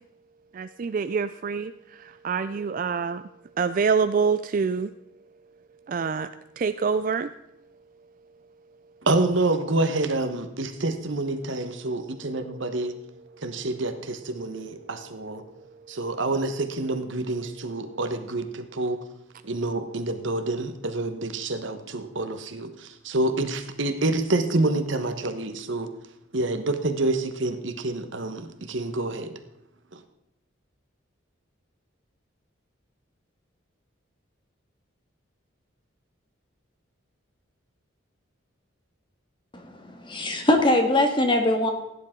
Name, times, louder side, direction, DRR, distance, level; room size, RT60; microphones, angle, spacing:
voice 1, 0.5-3.2 3.6-4.9 5.9-6.3 6.6-7.3, right 5 dB, 45° right, 12 dB, 0.3 m, -26 dB
voice 2, 9.0-12.9 13.4-15.4 15.9-19.0 19.4-25.9 26.3-29.4 29.9-30.0, right 2 dB, 70° right, 8 dB, 1.2 m, -27 dB
voice 3, 39.5-41.7, left 1 dB, 25° left, 4 dB, 1.7 m, -22 dB
16.5 x 10.5 x 3.7 m, 0.86 s
head